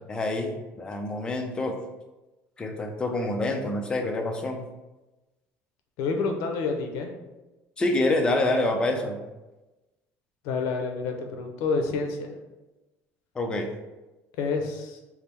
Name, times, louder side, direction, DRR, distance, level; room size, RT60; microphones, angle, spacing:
voice 1, 0.1-1.8 2.6-4.6 7.8-9.2 13.4-13.7, left 2 dB, 15° left, 3 dB, 0.4 m, -27 dB
voice 2, 6.0-7.1 10.4-12.4 14.4-15.0, left 4 dB, 75° left, 3 dB, 0.6 m, -28 dB
3.5 x 2.0 x 4.2 m, 1.1 s
cardioid pair, 165°, 6 cm